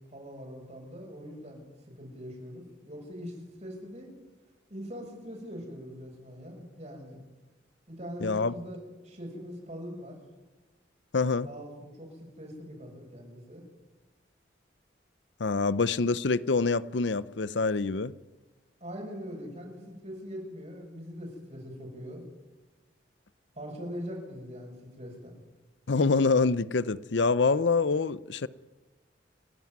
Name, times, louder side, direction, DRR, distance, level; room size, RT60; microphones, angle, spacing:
voice 1, 0.1-4.1 4.7-7.2 7.9-10.2 11.4-13.6 18.8-22.2 23.6-25.3, equal, 40° right, 7.1 m, -42 dB
voice 2, 8.2-8.5 11.1-11.5 15.4-18.1 25.9-28.5, left 4 dB, 75° left, 0.7 m, -26 dB
29.5 x 12.0 x 9.6 m
head